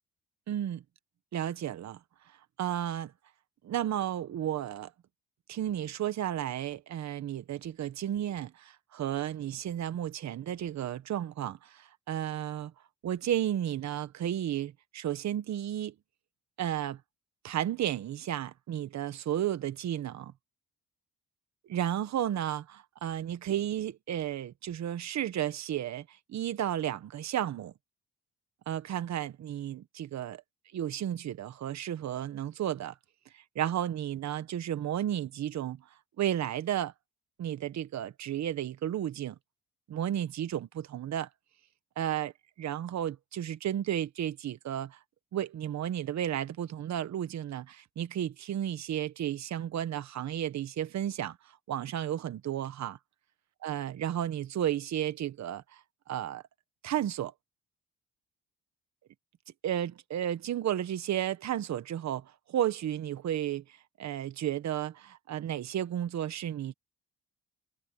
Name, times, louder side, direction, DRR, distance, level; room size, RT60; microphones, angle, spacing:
voice 1, 0.5-0.8 1.3-2.0 2.6-3.1 3.6-4.9 5.5-12.7 13.0-15.9 16.6-17.0 17.4-20.3 21.7-27.7 28.7-30.4 30.7-32.9 33.3-35.8 36.2-36.9 37.4-39.4 39.9-41.3 42.0-42.3 42.6-45.0 45.3-51.4 51.7-53.0 53.6-56.4 56.8-57.3 59.6-66.7, right 11 dB, 65° right, 1.3 m, -33 dB
cardioid pair, 90°, 30 cm